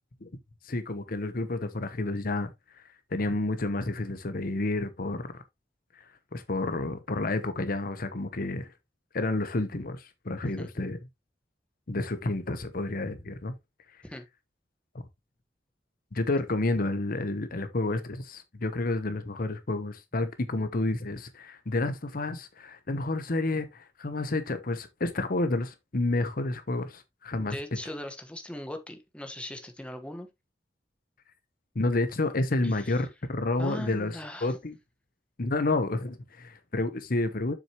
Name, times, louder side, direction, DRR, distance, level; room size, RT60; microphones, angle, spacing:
voice 1, 0.6-2.8 3.1-5.4 5.9-8.7 9.1-11.0 11.9-13.5 13.9-14.0 16.1-27.6 31.7-34.8 35.4-37.5, left 2 dB, 55° left, 0.9 m, -30 dB
voice 2, 27.4-30.3 32.6-32.9 33.6-34.5, left 1 dB, 5° left, 1.3 m, -39 dB
7.6 x 6.2 x 3.0 m
head